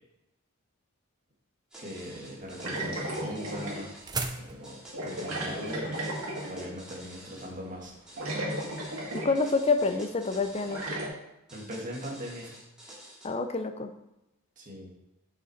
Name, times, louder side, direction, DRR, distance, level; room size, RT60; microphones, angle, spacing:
sound 1, 1.7-4.1 4.6-7.5 8.1-10.9 11.5-13.3, right 1 dB, 5° right, 2.1 m, -49 dB
voice 1, 1.8-4.0 4.3-6.1 6.5-7.9 11.5-12.5 14.6-14.9, equal, 40° right, -3 dB, 1.8 m, -40 dB
sound 2, 2.4-7.6, right 4 dB, 20° right, 0.5 m, -40 dB
sound 3, 2.6-3.9 4.9-6.8 7.8-7.9 8.2-9.5 9.9-10.0 10.7-11.1, right 1 dB, 75° right, 2.1 m, -35 dB
voice 2, 9.1-10.8 13.2-13.9, left 3 dB, 30° left, 8 dB, 0.5 m, -27 dB
7.2 x 5.6 x 4.2 m, 0.90 s
head